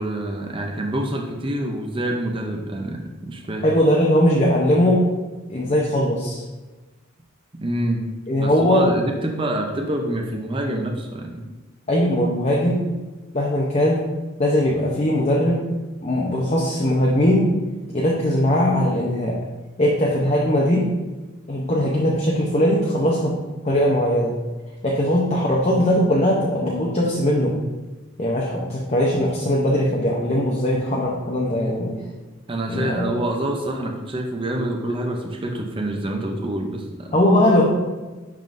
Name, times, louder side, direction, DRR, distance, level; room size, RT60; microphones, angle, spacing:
voice 1, 0.0-3.7 7.5-8.1 8.4-11.4 32.5-37.1, right 1 dB, 25° right, 1 dB, 0.5 m, -26 dB
voice 2, 3.6-5.0 5.5-6.4 8.3-8.9 11.9-12.9 13.3-14.0 14.4-15.6 16.0-17.5 17.9-19.3 19.8-20.9 21.5-23.3 23.6-24.3 24.8-27.5 28.2-31.9 32.7-33.1 37.1-37.7, equal, 30° left, -3 dB, 0.6 m, -20 dB
10.5 x 3.7 x 2.6 m, 1.2 s
head